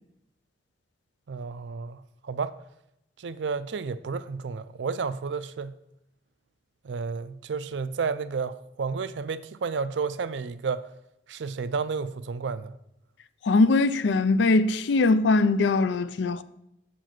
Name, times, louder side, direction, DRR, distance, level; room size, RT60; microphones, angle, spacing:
voice 1, 1.3-2.0 2.2-2.6 3.2-5.7 6.8-10.9 11.3-12.7, right 5 dB, 75° right, 0.4 m, -31 dB
voice 2, 13.4-16.4, left 3 dB, 75° left, 0.4 m, -21 dB
7.7 x 5.1 x 5.9 m
head